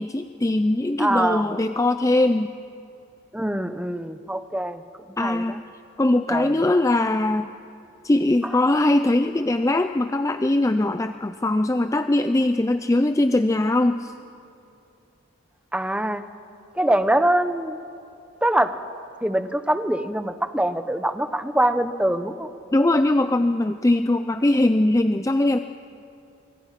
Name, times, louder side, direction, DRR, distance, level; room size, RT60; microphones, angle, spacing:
voice 1, 0.0-2.5 5.2-5.6 6.0-7.5 8.0-14.1 22.7-25.6, left 1 dB, 15° left, 9 dB, 0.4 m, -21 dB
voice 2, 1.0-1.5 3.3-4.8 5.2-5.6 6.3-6.5 8.4-8.5 15.7-16.2 16.7-17.8 18.4-18.7 19.2-22.5, right 1 dB, 5° right, 10 dB, 0.8 m, -23 dB
25.0 x 25.0 x 5.8 m, 2.7 s
head